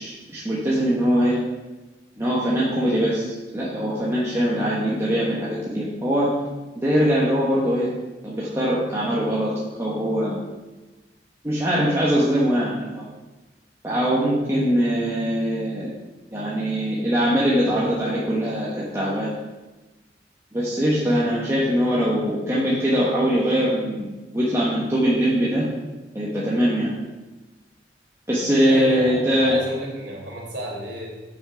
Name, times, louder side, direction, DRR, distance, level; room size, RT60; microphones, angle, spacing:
voice 1, 0.0-1.4 2.2-6.3 6.8-7.9 8.2-9.5 9.8-10.4 11.4-13.0 13.8-15.9 16.3-19.4 20.5-25.7 26.1-26.9 28.3-29.6, equal, 15° right, -7 dB, 1.2 m, -22 dB
voice 2, 28.6-31.1, right 1 dB, 80° right, -3 dB, 2.9 m, -32 dB
7.2 x 6.2 x 5.0 m, 1.1 s
head